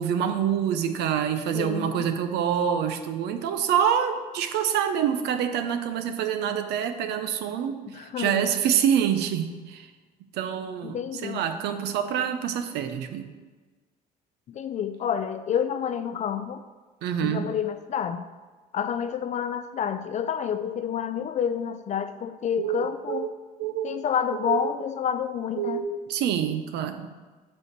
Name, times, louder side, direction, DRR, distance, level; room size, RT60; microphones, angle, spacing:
voice 1, 0.0-9.9 10.3-13.3 17.0-17.5 22.6-23.3 23.6-24.0 24.3-24.7 25.6-27.1, right 8 dB, 80° right, 8 dB, 0.7 m, -26 dB
voice 2, 1.5-2.1 7.9-8.5 10.8-11.4 14.5-16.6 17.2-18.2 18.7-23.3 23.8-25.8, left 8 dB, 45° left, 11 dB, 0.4 m, -29 dB
5.6 x 5.2 x 6.6 m, 1.4 s
cardioid pair, 110°, 17 cm